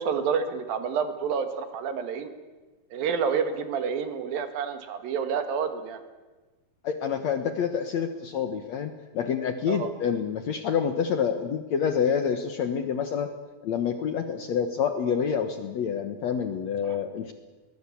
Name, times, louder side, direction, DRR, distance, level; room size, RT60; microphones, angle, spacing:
voice 1, 0.0-2.3 2.9-6.0 9.7-9.9 16.8-17.0, right 6 dB, 70° right, 9 dB, 3.3 m, -29 dB
voice 2, 6.8-13.3 13.6-17.3, left 7 dB, 60° left, 8 dB, 1.9 m, -27 dB
22.0 x 19.5 x 8.5 m, 1.3 s
omnidirectional pair, 4.4 m